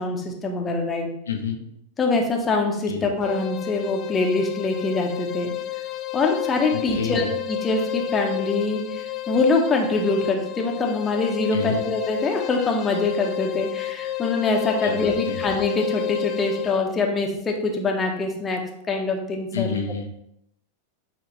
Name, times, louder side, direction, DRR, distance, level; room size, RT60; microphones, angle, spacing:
voice 1, 0.0-1.1 2.0-5.5 6.1-18.6 18.9-19.8, left 3 dB, 20° left, 1 dB, 1.0 m, -24 dB
voice 2, 1.3-1.6 2.9-3.0 6.7-7.3 11.5-11.8 14.8-15.4 19.5-20.1, left 6 dB, 70° left, 1 dB, 0.8 m, -29 dB
sound 1, 3.2-16.9, left 14 dB, 35° left, 0.4 m, -31 dB
8.4 x 3.4 x 3.3 m, 0.77 s
figure-of-eight pair, 90°, 0 cm